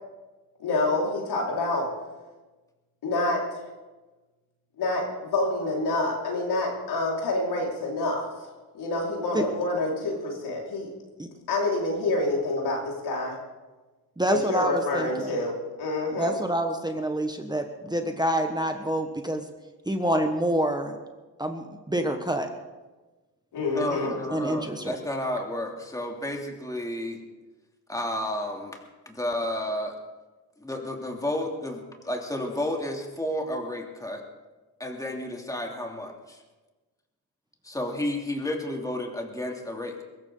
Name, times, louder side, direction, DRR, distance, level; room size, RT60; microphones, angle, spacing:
voice 1, 0.6-1.9 3.0-3.6 4.8-8.3 8.7-10.9 11.5-13.4 14.3-16.3 23.5-24.1, left 2 dB, 75° left, -2 dB, 5.0 m, -27 dB
voice 2, 14.2-15.4 16.1-19.4 19.9-21.0 21.4-22.5 24.3-25.0, right 1 dB, 10° right, 5 dB, 1.4 m, -27 dB
voice 3, 23.7-27.2 27.9-28.8 29.0-30.0 30.6-34.2 34.8-36.4 37.6-40.0, left 1 dB, 10° left, 1 dB, 2.9 m, -31 dB
23.0 x 14.0 x 3.9 m, 1.2 s
cardioid pair, 85°, 40 cm